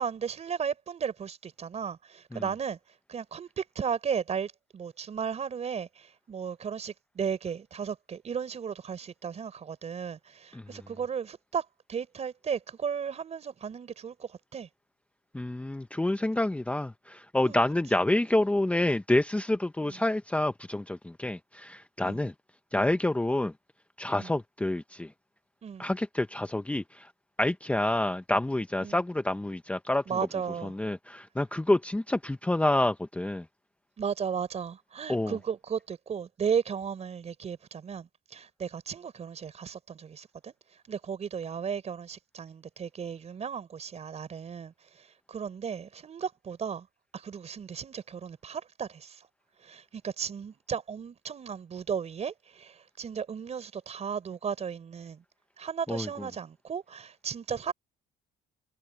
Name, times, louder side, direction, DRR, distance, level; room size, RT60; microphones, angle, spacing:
voice 1, 0.0-2.8 3.1-14.7 17.4-17.6 19.8-20.0 22.0-22.2 24.2-24.3 25.6-25.9 28.8-29.0 30.1-30.7 34.0-40.5 40.9-46.9 47.1-49.3 49.6-55.2 55.6-57.7, right 7 dB, 40° right, 4.4 m, -35 dB
voice 2, 15.3-22.3 22.7-23.5 24.0-25.1 25.8-27.1 27.4-30.2 30.6-33.4 35.1-35.4 55.9-56.3, left 1 dB, 5° left, 0.8 m, -28 dB
cardioid pair, 110°, 17 cm